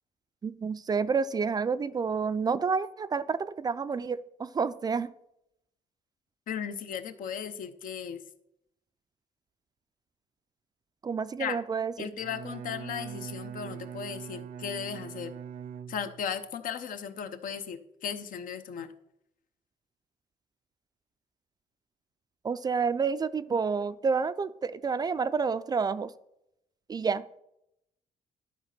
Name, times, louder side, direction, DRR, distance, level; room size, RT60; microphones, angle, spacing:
voice 1, 0.4-5.1 11.0-12.1 22.4-26.1 26.9-27.4, right 5 dB, 30° right, 14 dB, 0.3 m, -29 dB
voice 2, 6.5-8.2 11.4-11.6 12.0-15.3 15.9-18.9, left 8 dB, 75° left, 9 dB, 0.8 m, -36 dB
Bowed string instrument, 12.1-16.4, right 8 dB, 85° right, 0.6 m, -42 dB
11.5 x 4.1 x 5.9 m, 0.79 s
cardioid pair, 130°, 14 cm